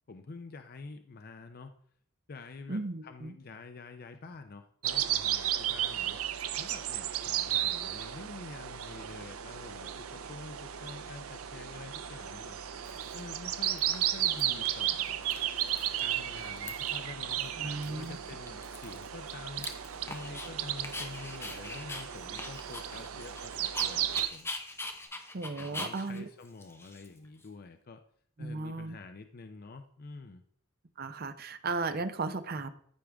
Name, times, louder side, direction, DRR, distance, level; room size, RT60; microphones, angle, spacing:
voice 1, 0.1-1.7 2.3-15.2 16.0-19.7 20.1-24.5 25.6-28.0 28.4-30.4, left 3 dB, 45° left, 7 dB, 0.5 m, -47 dB
voice 2, 2.7-3.3 17.6-18.2 25.3-26.3 28.4-29.0 31.0-32.7, right 3 dB, 45° right, 11 dB, 0.6 m, -35 dB
sound 1, 4.8-24.3, right 11 dB, 90° right, 0.6 m, -34 dB
sound 2, 9.2-25.1, left 4 dB, 90° left, 3.7 m, -62 dB
Dog, 12.1-12.2 12.8-13.3 13.6-14.4 14.7-14.8 15.1-16.1 16.4-17.0 17.4-17.5 17.8-20.5 20.8-27.5, left 2 dB, 10° left, 0.8 m, -43 dB
13.5 x 5.0 x 3.4 m, 0.63 s
head